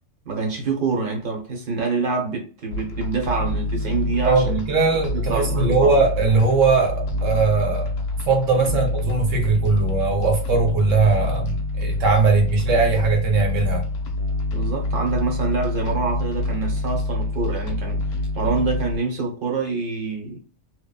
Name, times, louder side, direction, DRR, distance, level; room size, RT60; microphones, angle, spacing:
voice 1, 0.3-4.7 5.1-6.0 8.5-8.8 14.5-20.4, right 4 dB, 50° right, 0.8 m, -26 dB
sound 1, 2.7-19.0, left 2 dB, 65° left, 0.8 m, -26 dB
voice 2, 4.3-7.9 8.3-13.8, right 4 dB, 90° right, 1.2 m, -20 dB
2.9 x 2.0 x 2.2 m
omnidirectional pair, 1.3 m